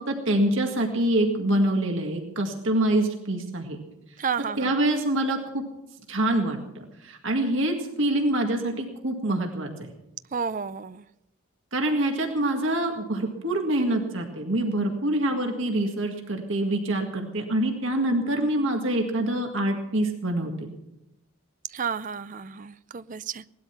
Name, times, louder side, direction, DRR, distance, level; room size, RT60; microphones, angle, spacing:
voice 1, 0.1-3.8 4.6-5.6 6.1-6.6 7.0-9.9 11.7-20.7, right 1 dB, 65° right, 2 dB, 2.0 m, -25 dB
voice 2, 4.2-4.8 10.3-11.0 21.7-23.5, right 6 dB, 40° right, 15 dB, 0.5 m, -31 dB
18.5 x 12.0 x 6.0 m, 0.88 s
head